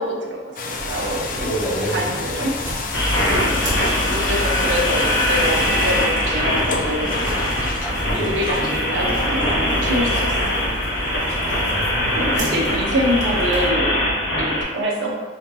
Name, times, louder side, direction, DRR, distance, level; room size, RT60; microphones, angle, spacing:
voice 1, 0.0-1.5 1.9-2.6 3.3-3.6 4.1-7.2 8.2-10.4 12.1-14.0 14.4-15.1, equal, 75° right, -1 dB, 0.7 m, -25 dB
sound 1, 0.6-11.2, left 4 dB, 45° left, 0.3 m, -31 dB
sound 2, 0.8-13.7, equal, 20° right, 1.1 m, -33 dB
voice 2, 1.1-2.4 7.8-8.7 9.5-10.3 11.4-12.6 14.2-14.5, right 1 dB, ahead, -8 dB, 0.9 m, -30 dB
sound 3, 2.9-14.6, left 1 dB, 65° left, 0.7 m, -22 dB
5.0 x 2.7 x 2.3 m, 1.3 s
head